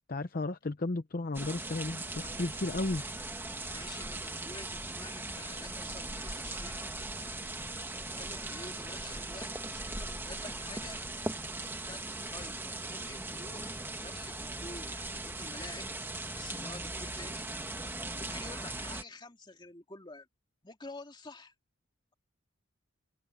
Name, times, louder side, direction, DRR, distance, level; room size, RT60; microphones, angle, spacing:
voice 1, 0.1-3.0, left 2 dB, 45° left, 0.7 m, -34 dB
sound 1, 1.3-19.0, right 2 dB, 10° right, 1.6 m, -39 dB
voice 2, 3.7-6.9 8.2-11.0 11.9-15.9 16.3-17.5 18.2-20.3 20.6-21.5, left 2 dB, 20° left, 2.5 m, -49 dB
head